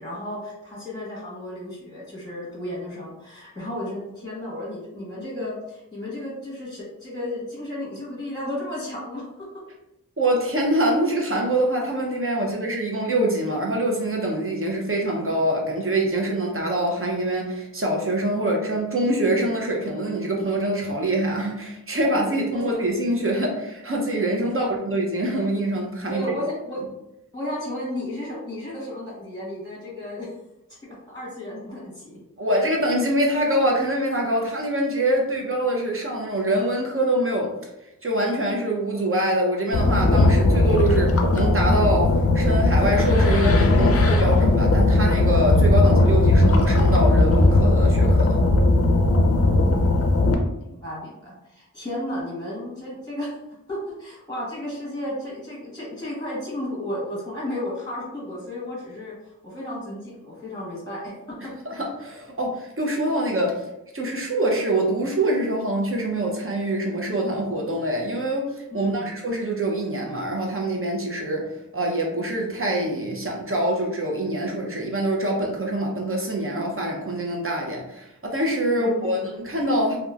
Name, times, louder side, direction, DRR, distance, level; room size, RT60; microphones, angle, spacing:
voice 1, 0.0-9.5 12.4-12.5 22.1-22.2 22.5-22.8 24.4-24.7 26.1-26.8 27.3-30.3 30.8-32.2 50.3-53.4 53.7-59.1 59.4-61.1 63.1-63.2 68.7-69.2 78.8-79.3, left 1 dB, 10° left, -5 dB, 1.2 m, -33 dB
voice 2, 10.2-26.3 32.4-37.5 38.0-48.4 61.7-63.6 63.9-71.5 71.7-80.0, right 1 dB, 40° right, 0 dB, 0.7 m, -24 dB
sound 1, 39.7-50.3, left 2 dB, 45° left, 0.4 m, -18 dB
2.9 x 2.3 x 2.4 m, 0.88 s
wide cardioid pair, 45°, 33 cm